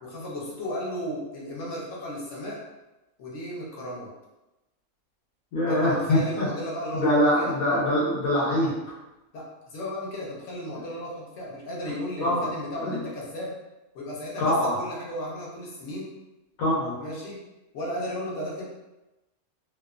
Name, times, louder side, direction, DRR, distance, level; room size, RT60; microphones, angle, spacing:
voice 1, 0.0-2.6 3.2-4.1 5.7-7.0 7.3-7.6 9.3-13.5 13.9-16.1 17.0-17.4 17.7-18.6, equal, 65° left, -5 dB, 0.9 m, -34 dB
voice 2, 5.5-6.5 6.9-8.7 10.7-10.8 12.2-12.5 12.8-13.0 14.4-14.7 16.6-17.0, left 1 dB, 80° left, -7 dB, 1.1 m, -23 dB
2.7 x 2.0 x 2.3 m, 1.0 s
omnidirectional pair, 1.5 m